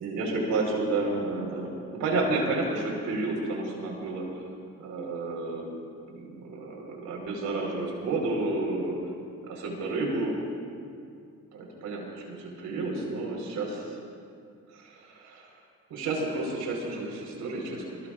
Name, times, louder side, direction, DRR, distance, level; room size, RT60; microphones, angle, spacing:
voice 1, 0.0-4.2 4.8-5.7 6.1-9.0 9.4-10.4 11.5-14.0 14.7-15.5 15.9-18.1, right 2 dB, 90° right, -1 dB, 4.4 m, -31 dB
24.5 x 22.0 x 2.5 m, 2.3 s
cardioid pair, 90°, 30 cm